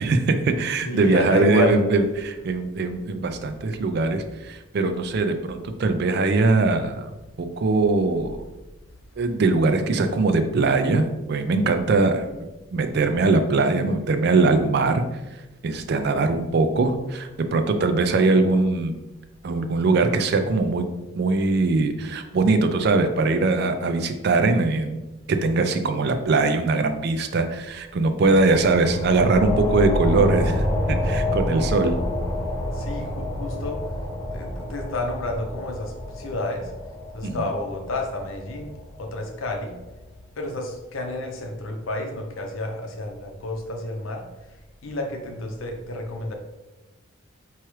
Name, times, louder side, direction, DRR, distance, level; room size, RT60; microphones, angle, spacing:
voice 1, 0.0-7.1 7.4-8.4 9.2-12.3 12.7-15.0 15.6-18.9 19.4-20.8 21.2-25.0 25.3-31.9 37.2-37.5, right 3 dB, 50° right, 7 dB, 0.4 m, -21 dB
voice 2, 0.9-1.8 32.7-33.8 34.3-36.7 37.1-38.7 39.0-39.8 40.4-44.3 44.8-46.3, left 1 dB, 75° left, 3 dB, 0.7 m, -30 dB
sound 1, 28.2-39.4, left 1 dB, 20° left, 0.6 m, -28 dB
4.7 x 3.0 x 3.0 m, 1.0 s
head